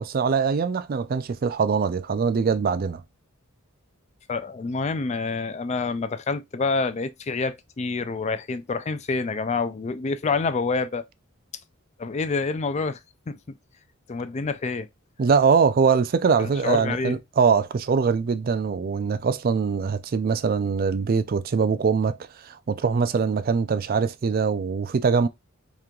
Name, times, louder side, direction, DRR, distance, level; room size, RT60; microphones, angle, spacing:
voice 1, 0.0-3.0 15.2-25.3, right 5 dB, 45° right, 0.4 m, -23 dB
voice 2, 4.3-11.1 12.0-13.0 13.3-13.4 14.1-14.9 16.4-17.2, left 4 dB, 30° left, 0.3 m, -27 dB
3.2 x 3.0 x 3.7 m
head